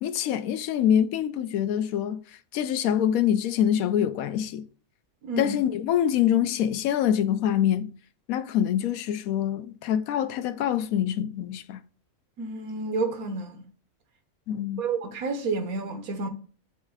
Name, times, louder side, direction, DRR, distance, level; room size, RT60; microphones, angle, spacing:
voice 1, 0.0-2.2 2.5-4.6 5.4-7.9 8.3-11.8 14.5-14.8, left 10 dB, 80° left, 1.0 m, -25 dB
voice 2, 5.2-5.6 12.4-13.6 14.8-16.3, right 3 dB, 85° right, 1.5 m, -30 dB
7.4 x 3.1 x 4.8 m
omnidirectional pair, 1.5 m